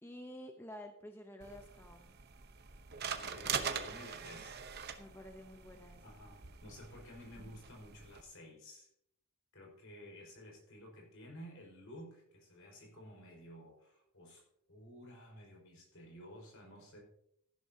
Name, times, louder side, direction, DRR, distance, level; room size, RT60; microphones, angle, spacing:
voice 1, 0.0-2.1 5.0-6.0, equal, 10° left, 4 dB, 0.8 m, -50 dB
sound 1, 1.4-8.2, right 7 dB, 45° right, 0.9 m, -43 dB
voice 2, 3.0-4.6 6.0-8.9 9.5-14.4 14.7-17.0, equal, 65° left, 0 dB, 5.1 m, -53 dB
14.5 x 11.5 x 2.8 m, 0.71 s
head